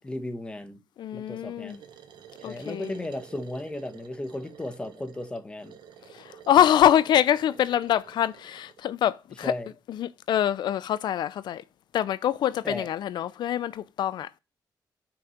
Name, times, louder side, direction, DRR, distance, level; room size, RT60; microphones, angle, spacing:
voice 1, 0.0-0.8 1.1-1.8 2.4-5.7 9.4-9.7 12.6-12.9, left 1 dB, 15° left, 1.2 m, -35 dB
voice 2, 1.0-1.8 2.4-2.9 6.1-9.5 9.9-11.6 11.9-14.3, left 10 dB, 85° left, 0.4 m, -24 dB
sound 1, 1.7-8.8, right 8 dB, 85° right, 1.2 m, -50 dB
6.0 x 4.6 x 6.4 m
wide cardioid pair, 165°, 7 cm